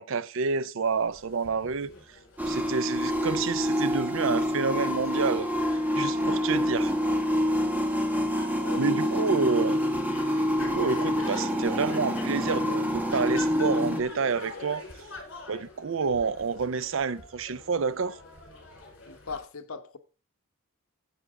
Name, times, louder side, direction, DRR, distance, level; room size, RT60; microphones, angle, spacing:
voice 1, 0.0-1.9 2.5-6.9 8.8-9.8 10.6-14.8 15.5-18.2, right 5 dB, 65° right, 0.5 m, -29 dB
sound 1, 0.8-19.4, left 2 dB, 60° left, 4.5 m, -46 dB
sound 2, 2.4-14.0, equal, 10° right, 1.1 m, -27 dB
voice 2, 8.6-9.2 19.1-20.0, left 4 dB, 80° left, 1.0 m, -39 dB
13.5 x 8.2 x 3.6 m
head